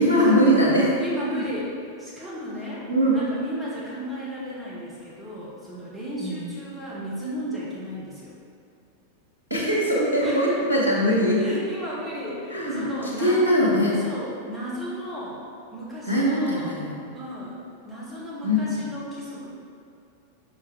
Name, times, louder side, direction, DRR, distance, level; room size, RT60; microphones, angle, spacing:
voice 1, 0.0-0.9 2.9-3.2 6.2-6.4 9.5-11.6 12.5-12.8 13.2-14.0 16.1-16.9 18.4-18.6, equal, 80° right, -6 dB, 1.6 m, -21 dB
voice 2, 1.0-1.7 2.0-8.3 10.2-10.5 11.4-13.4 14.0-15.4 15.7-16.7 17.1-19.5, equal, 5° right, -8 dB, 1.5 m, -35 dB
5.7 x 5.0 x 4.6 m, 2.4 s
figure-of-eight pair, 90°, 0 cm